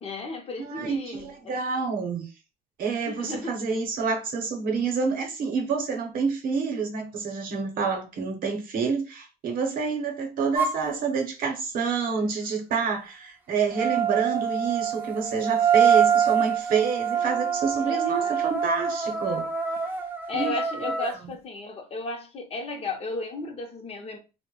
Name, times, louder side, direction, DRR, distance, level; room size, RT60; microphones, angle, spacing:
voice 1, 0.0-1.6 3.0-3.6 17.8-18.3 20.3-24.2, left 3 dB, 35° left, 0.6 m, -34 dB
voice 2, 0.6-2.3 2.8-19.5 20.3-21.3, right 5 dB, 60° right, 0.8 m, -28 dB
sound 1, 10.6-10.8 13.7-21.2, right 7 dB, 10° right, 0.4 m, -25 dB
2.1 x 2.1 x 3.0 m
cardioid pair, 110°, 17 cm